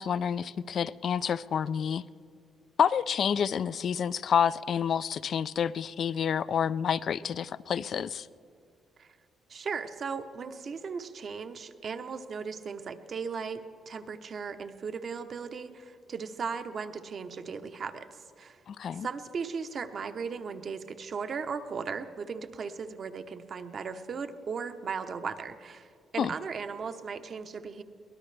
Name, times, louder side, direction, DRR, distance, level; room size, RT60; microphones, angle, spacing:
voice 1, 0.0-2.0 2.8-8.3 18.7-19.1 26.2-26.3, left 8 dB, 60° left, 16 dB, 0.4 m, -28 dB
voice 2, 9.5-18.6 18.9-27.8, right 5 dB, 50° right, 8 dB, 0.9 m, -37 dB
23.5 x 18.5 x 3.3 m, 2.3 s
cardioid pair, 90°, 0 cm